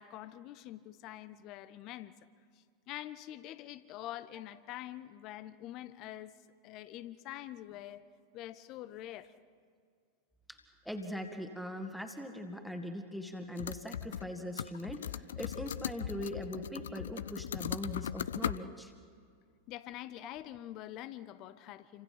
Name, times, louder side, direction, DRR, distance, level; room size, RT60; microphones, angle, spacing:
voice 1, 0.0-2.1 2.9-6.3 6.6-8.0 8.3-9.3 19.7-22.0, left 13 dB, 40° left, 14 dB, 1.2 m, -45 dB
voice 2, 10.9-18.9 20.2-20.3, equal, ahead, 5 dB, 2.1 m, -41 dB
sound 1, 13.6-14.3 14.6-18.6, left 10 dB, 65° left, 0.6 m, -38 dB
29.0 x 25.5 x 5.9 m, 2.1 s
figure-of-eight pair, 90°, 0 cm